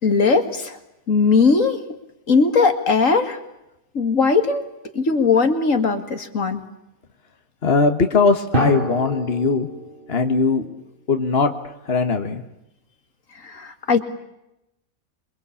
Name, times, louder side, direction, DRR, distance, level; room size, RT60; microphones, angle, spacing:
voice 1, 0.0-0.8 1.1-1.8 2.3-3.4 3.9-4.6 4.9-6.6 13.4-14.0, left 4 dB, 70° left, 7 dB, 2.5 m, -18 dB
voice 2, 7.6-9.7 10.1-10.7 11.1-11.5 11.9-12.4, left 4 dB, 45° left, 6 dB, 1.9 m, -19 dB
Drum, 8.5-10.8, equal, 40° right, 3.5 m, -27 dB
27.5 x 24.0 x 8.6 m, 0.87 s
omnidirectional pair, 1.4 m